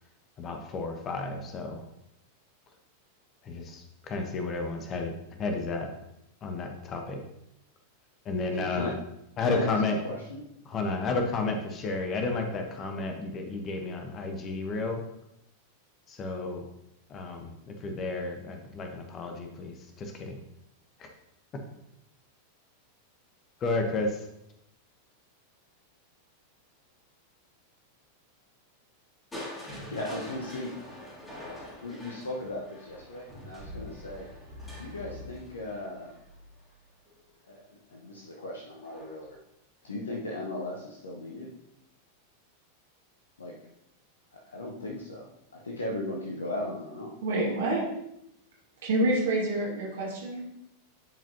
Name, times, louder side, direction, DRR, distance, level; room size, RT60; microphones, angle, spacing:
voice 1, 0.4-1.8 3.4-5.9 6.4-7.2 8.2-8.9 9.4-10.0 10.7-15.0 16.1-16.7 17.1-20.4 21.0-21.1 21.5-21.6 23.6-24.3, left 3 dB, 30° left, 4 dB, 1.0 m, -32 dB
voice 2, 8.5-9.0 9.4-10.4 29.9-30.8 31.4-34.3 34.8-36.1 37.4-39.4 39.8-41.6 43.4-43.6 44.3-45.3 45.5-47.2, left 1 dB, 70° left, -2 dB, 1.0 m, -37 dB
Crushing, 29.3-37.3 38.8-39.3 39.8-39.9, left 1 dB, 10° left, 2.8 m, -45 dB
voice 3, 47.2-47.9 48.8-50.4, right 1 dB, 60° right, -4 dB, 2.0 m, -27 dB
10.5 x 5.1 x 2.8 m, 0.82 s
figure-of-eight pair, 90°, 0 cm